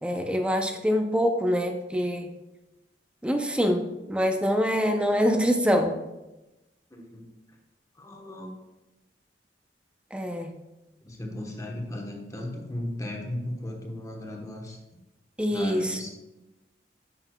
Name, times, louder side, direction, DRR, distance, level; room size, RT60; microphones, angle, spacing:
voice 1, 0.0-2.3 3.2-6.0 10.1-10.5 15.4-16.0, equal, 5° right, 5 dB, 0.5 m, -25 dB
voice 2, 6.9-7.3 8.0-8.5 11.0-15.0 15.5-16.1, left 1 dB, 20° left, 1 dB, 1.0 m, -36 dB
9.0 x 5.9 x 2.2 m, 1.0 s
head